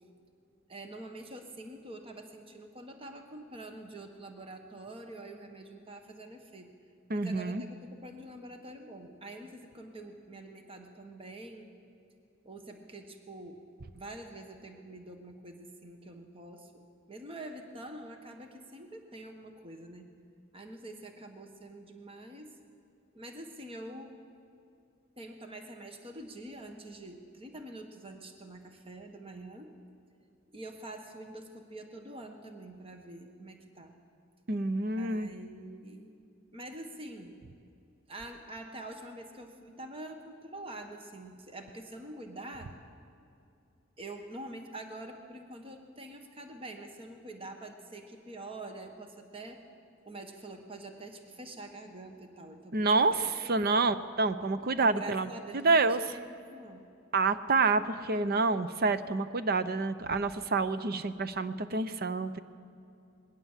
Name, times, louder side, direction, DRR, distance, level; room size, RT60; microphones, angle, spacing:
voice 1, 0.7-6.7 7.1-11.7 12.4-13.6 13.9-20.1 20.5-22.6 23.1-24.2 25.2-29.7 30.5-34.0 35.0-36.1 36.5-37.4 38.1-42.7 44.0-49.6 50.0-53.2 53.6-53.7 54.8-56.9, right 1 dB, 30° right, 5 dB, 1.4 m, -46 dB
voice 2, 7.1-7.6 34.5-35.3 52.7-56.0 57.1-62.4, right 3 dB, 50° right, 12 dB, 0.7 m, -28 dB
21.0 x 17.5 x 7.4 m, 2.6 s
head